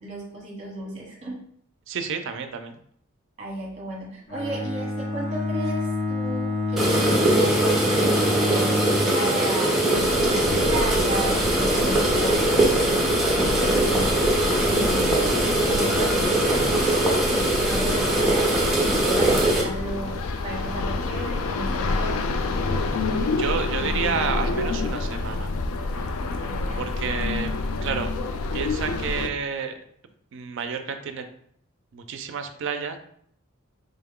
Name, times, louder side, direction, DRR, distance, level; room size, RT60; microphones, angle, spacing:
voice 1, 0.0-1.4 3.4-15.2 15.6-18.5 19.1-22.3 26.4-26.9, right 1 dB, 30° right, -2 dB, 1.0 m, -35 dB
voice 2, 1.9-2.8 22.9-25.5 26.8-27.5 27.8-28.1 28.5-29.8 30.3-31.2 31.9-33.0, right 6 dB, 55° right, 7 dB, 0.4 m, -30 dB
Bowed string instrument, 4.3-9.2, left 2 dB, 45° left, 0.8 m, -27 dB
sound 1, 6.8-19.6, right 1 dB, ahead, 0.7 m, -21 dB
sound 2, 9.9-29.3, left 3 dB, 70° left, 0.4 m, -28 dB
3.6 x 2.2 x 3.6 m, 0.65 s
head